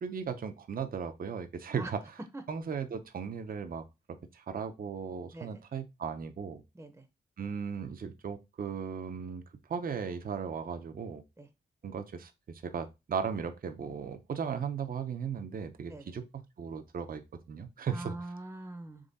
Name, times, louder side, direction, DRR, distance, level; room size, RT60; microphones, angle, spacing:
voice 1, 0.0-2.0 2.5-6.6 7.4-9.4 9.7-11.2 11.8-18.2, right 6 dB, 50° right, 0.6 m, -37 dB
voice 2, 6.7-7.1 11.4-11.5 15.9-16.1 17.9-19.1, right 2 dB, 15° right, 0.7 m, -43 dB
3.6 x 3.2 x 4.0 m
cardioid pair, 65°, 19 cm